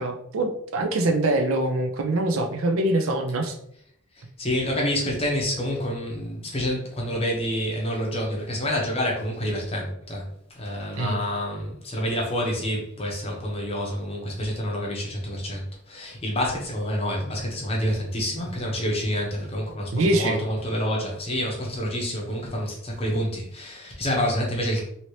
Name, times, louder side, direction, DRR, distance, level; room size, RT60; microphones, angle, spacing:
voice 1, 0.0-3.6 11.0-11.2 19.9-20.4, right 2 dB, 70° right, 4 dB, 0.5 m, -24 dB
voice 2, 4.4-24.8, equal, 25° left, -1 dB, 0.8 m, -28 dB
2.9 x 2.8 x 3.1 m, 0.69 s
head